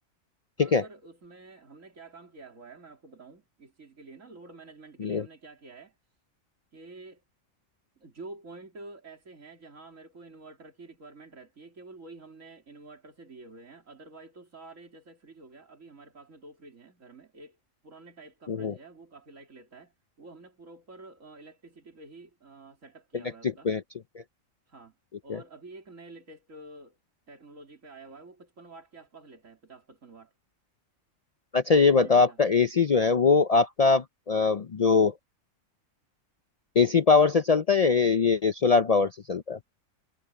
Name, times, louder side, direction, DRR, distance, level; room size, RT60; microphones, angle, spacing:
voice 1, 0.6-6.0 6.7-7.2 8.0-17.6 17.8-23.7 24.7-25.0 25.2-27.0 27.3-30.3 32.0-32.4, right 3 dB, 75° right, 3.6 m, -49 dB
voice 2, 23.4-23.8 25.3-25.4 31.5-35.1 36.8-39.6, left 4 dB, 60° left, 0.4 m, -22 dB
omnidirectional pair, 1.4 m